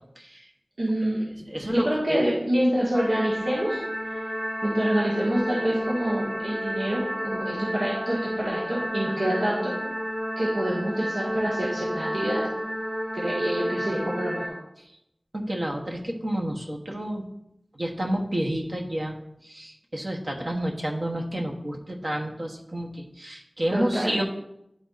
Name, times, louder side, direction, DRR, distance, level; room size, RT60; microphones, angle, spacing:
voice 1, 0.8-1.2 1.6-9.7 10.4-12.5 13.1-14.6 23.7-24.2, right 1 dB, 85° right, -7 dB, 1.9 m, -27 dB
voice 2, 1.5-2.2 15.3-17.2 17.7-19.1 19.4-24.2, right 1 dB, 55° right, 0 dB, 1.3 m, -29 dB
sound 1, 2.9-14.5, equal, 10° right, 2.3 m, -31 dB
11.0 x 3.9 x 4.0 m, 0.82 s
wide cardioid pair, 50°, 0 cm